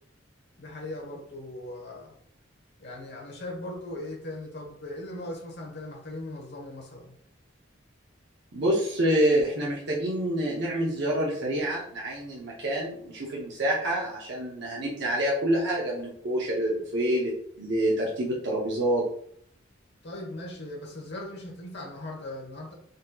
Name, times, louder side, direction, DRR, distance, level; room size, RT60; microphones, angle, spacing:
voice 1, 0.6-2.1 2.8-7.2 20.0-22.7, left 1 dB, 60° left, -1 dB, 1.1 m, -39 dB
voice 2, 8.5-19.0, right 1 dB, 60° right, -5 dB, 0.7 m, -27 dB
4.0 x 2.8 x 2.3 m, 0.65 s
head